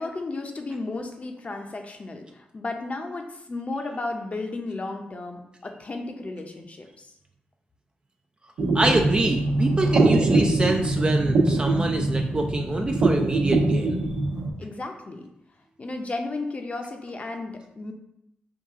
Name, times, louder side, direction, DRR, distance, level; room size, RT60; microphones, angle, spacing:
voice 1, 0.0-7.1 14.6-15.3 15.8-17.9, left 2 dB, 35° left, 4 dB, 0.6 m, -34 dB
sound 1, 8.6-14.5, right 2 dB, 90° right, 1.0 m, -22 dB
voice 2, 8.7-14.0, right 2 dB, 25° right, 3 dB, 0.4 m, -25 dB
4.7 x 2.5 x 3.6 m, 0.81 s
cardioid pair, 75°, 4 cm